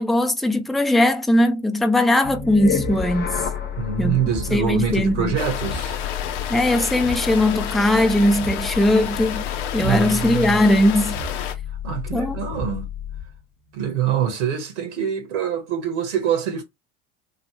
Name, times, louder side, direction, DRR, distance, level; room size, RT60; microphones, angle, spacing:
voice 1, 0.0-3.4 4.0-4.2 4.5-5.3 6.5-9.5 9.7-11.1 12.1-12.4, left 1 dB, ahead, 0.5 m, -19 dB
sound 1, 2.2-13.4, left 7 dB, 30° left, 0.9 m, -30 dB
voice 2, 3.8-6.0 9.8-10.6 11.8-12.8 13.7-16.6, right 8 dB, 75° right, 1.3 m, -25 dB
sound 2, 5.4-11.5, left 9 dB, 75° left, 0.6 m, -30 dB
3.2 x 2.5 x 3.0 m
hypercardioid pair, 70°, 35 cm